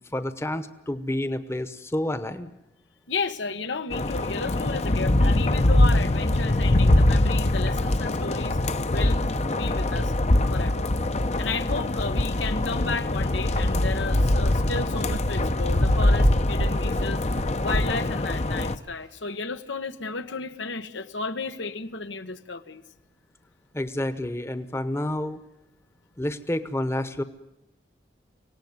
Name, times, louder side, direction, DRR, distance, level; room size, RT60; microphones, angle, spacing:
voice 1, 0.1-2.5 23.7-25.4 26.2-27.2, left 1 dB, 15° left, 12 dB, 1.0 m, -29 dB
voice 2, 3.1-8.6 8.9-9.2 9.5-10.1 10.5-10.9 11.4-17.2 17.6-22.8, left 4 dB, 85° left, 9 dB, 1.3 m, -33 dB
sound 1, 3.9-18.8, left 1 dB, 35° left, 0.8 m, -23 dB
sound 2, 14.0-14.1 14.4-14.5 14.7-14.8 15.1-15.2 15.5-15.6 15.9-16.3 16.6-16.7 17.0-17.1 17.4-17.5 17.7-17.8, right 1 dB, 60° right, 0.8 m, -27 dB
25.0 x 18.0 x 9.5 m, 0.94 s
head